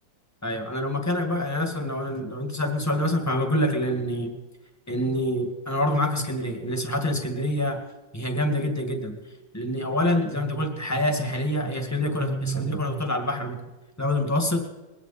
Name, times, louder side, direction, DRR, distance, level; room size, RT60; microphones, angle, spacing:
voice 1, 0.4-4.4 4.9-7.8 8.1-9.2 9.5-13.6 14.0-14.7, left 1 dB, 10° left, 5 dB, 1.8 m, -26 dB
21.0 x 16.0 x 4.3 m, 1.1 s
omnidirectional pair, 1.9 m